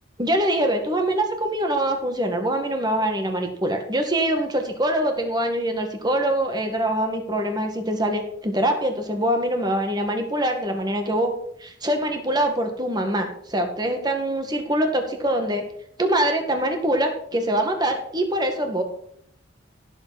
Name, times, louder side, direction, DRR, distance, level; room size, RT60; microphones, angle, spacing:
voice 1, 0.2-11.3 11.6-15.6 16.0-18.8, right 1 dB, 20° right, 5 dB, 1.8 m, -24 dB
16.0 x 7.7 x 4.2 m, 0.69 s
head